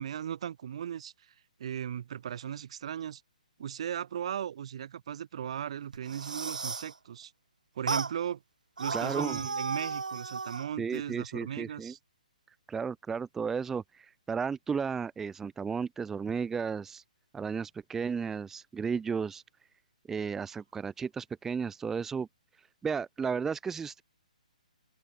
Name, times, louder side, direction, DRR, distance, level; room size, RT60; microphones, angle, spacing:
voice 1, 0.0-1.3 1.6-3.2 3.6-7.3 7.8-8.4 8.8-12.0, right 9 dB, 50° right, 1.9 m, -37 dB
sound 1, 5.9-6.9 7.9-8.1 8.8-10.7, right 4 dB, 70° right, 1.4 m, -34 dB
voice 2, 8.9-9.4 10.8-11.9 12.7-17.0 17.3-19.4 20.1-22.3 22.6-24.0, right 6 dB, 10° right, 0.6 m, -34 dB
open air
figure-of-eight pair, 130°, 4 cm